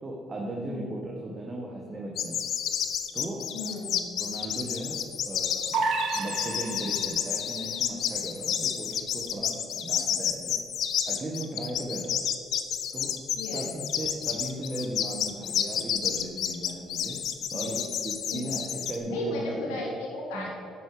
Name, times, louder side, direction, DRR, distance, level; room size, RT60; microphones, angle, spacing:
voice 1, 0.0-2.4 3.1-3.4 4.2-5.0 5.2-5.8 6.1-10.6 11.1-12.2 12.9-13.1 13.5-17.2 17.5-19.8 20.3-20.5, right 1 dB, 35° right, -1 dB, 1.7 m, -36 dB
sound 1, 2.2-19.0, left 9 dB, 65° left, 0.8 m, -30 dB
voice 2, 3.5-4.1 13.3-13.6 17.5-17.8 18.3-18.4 19.1-20.5, left 1 dB, 90° left, -2 dB, 2.7 m, -35 dB
sound 2, 5.7-7.4, right 3 dB, 70° right, 1.7 m, -30 dB
10.5 x 8.6 x 5.1 m, 2.6 s
supercardioid pair, 65°, 0 cm